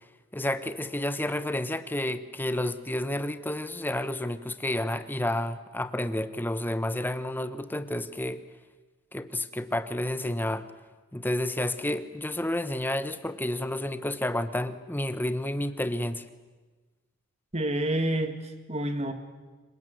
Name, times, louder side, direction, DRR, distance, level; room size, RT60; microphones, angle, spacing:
voice 1, 0.3-8.4 9.1-10.7 11.1-16.2, left 1 dB, 10° left, 11 dB, 1.0 m, -30 dB
voice 2, 17.5-19.1, right 1 dB, 30° right, 8 dB, 2.1 m, -28 dB
26.5 x 23.0 x 9.4 m, 1.3 s
head